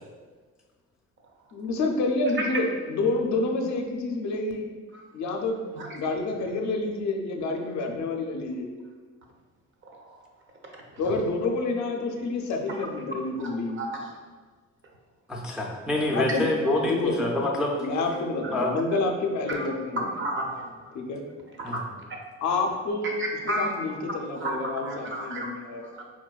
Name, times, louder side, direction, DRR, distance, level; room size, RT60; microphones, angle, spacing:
voice 1, 1.5-4.7 5.1-5.6 5.9-8.7 11.0-13.8 16.1-16.5 16.9-17.1 17.8-20.0 20.9-21.2 22.4-23.1 23.5-25.9, left 3 dB, 70° left, 2 dB, 0.5 m, -28 dB
voice 2, 9.9-10.2 10.7-11.0 13.4-13.5 13.8-14.1 19.5-19.7 20.2-20.7 21.6-21.8 23.2-23.7 24.4-25.5 25.8-26.0, right 1 dB, 40° right, 0 dB, 0.6 m, -32 dB
voice 3, 15.3-17.8 18.5-18.8 21.6-21.8, left 1 dB, ahead, -2 dB, 0.3 m, -26 dB
4.5 x 2.1 x 2.3 m, 1.4 s
cardioid pair, 90°, 30 cm